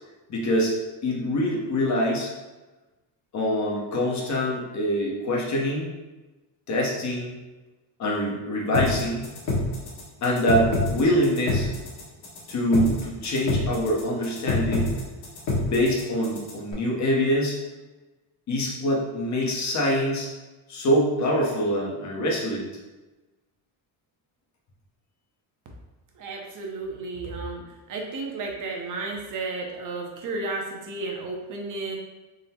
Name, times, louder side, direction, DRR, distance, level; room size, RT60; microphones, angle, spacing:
voice 1, 0.3-0.8 1.0-2.3 3.3-5.9 6.7-7.4 8.0-9.3 10.2-11.7 12.5-14.9 15.6-17.6 18.5-20.3 20.7-22.7, equal, 40° left, -2 dB, 0.9 m, -24 dB
sound 1, 8.7-16.7, left 2 dB, 60° left, 1.4 m, -27 dB
voice 2, 26.2-27.6 27.9-32.0, right 3 dB, 45° right, 0 dB, 0.8 m, -33 dB
3.8 x 2.1 x 4.2 m, 1.1 s
cardioid pair, 160°, 44 cm